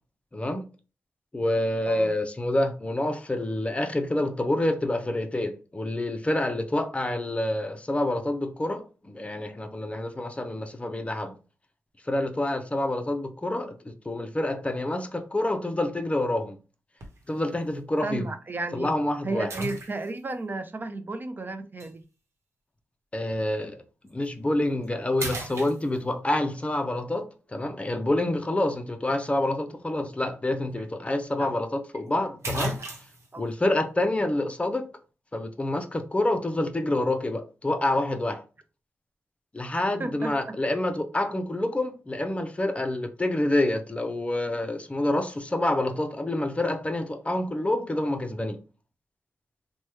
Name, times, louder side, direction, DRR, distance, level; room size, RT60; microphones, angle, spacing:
voice 1, 0.3-0.7 1.3-11.3 12.1-16.6 17.3-18.3 18.7-19.5 23.1-23.8 24.0-32.8 33.4-34.9 35.3-38.4 39.5-48.6, left 1 dB, 25° left, 0.5 m, -27 dB
sound 1, 17.0-17.3 18.0-18.1 19.5-20.3 21.8-21.9 24.1-24.3 24.7-24.9 25.2-26.3 30.4-30.5 30.8-30.9 31.9-32.0 32.4-33.3, right 1 dB, 60° right, 1.0 m, -34 dB
voice 2, 18.0-18.9 19.2-22.0 31.4-31.5 33.3-33.5 40.0-40.6, right 3 dB, 40° right, 0.5 m, -33 dB
3.0 x 2.2 x 3.1 m
cardioid pair, 50°, 5 cm